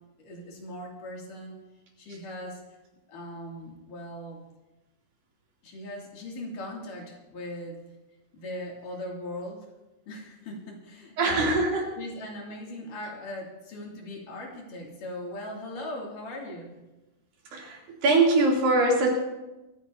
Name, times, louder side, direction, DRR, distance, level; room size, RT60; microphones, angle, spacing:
voice 1, 0.2-1.6 2.0-2.6 3.1-4.4 5.6-7.8 8.3-9.6 10.1-11.6 12.0-16.7, left 1 dB, 65° left, -2 dB, 4.3 m, -39 dB
voice 2, 11.2-11.9 17.5-19.1, right 2 dB, 80° right, -2 dB, 5.0 m, -22 dB
24.5 x 15.0 x 2.9 m, 1.0 s
omnidirectional pair, 4.1 m